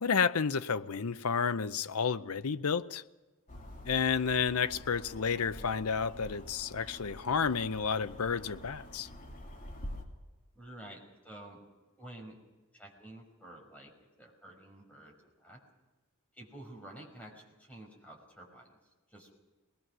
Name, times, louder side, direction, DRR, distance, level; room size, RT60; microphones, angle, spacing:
voice 1, 0.0-3.0 3.9-9.1, left 6 dB, 75° left, 0.7 m, -31 dB
sound 1, 3.5-10.0, left 1 dB, 35° left, 3.0 m, -47 dB
voice 2, 10.6-11.6 12.0-12.4 12.7-13.9 14.2-15.1 15.4-15.6 16.4-18.7 19.1-19.3, right 1 dB, 5° left, 5.4 m, -50 dB
22.0 x 20.0 x 6.2 m
head